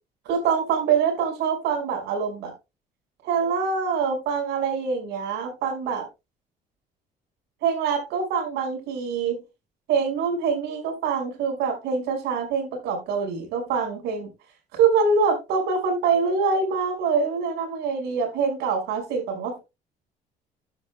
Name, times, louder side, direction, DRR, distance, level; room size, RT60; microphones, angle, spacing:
voice 1, 0.3-2.5 3.2-6.1 7.6-9.4 9.9-14.3 14.7-19.6, right 5 dB, 85° right, 4 dB, 5.4 m, -25 dB
13.0 x 9.8 x 2.2 m, 0.25 s
cardioid pair, 110°, 17 cm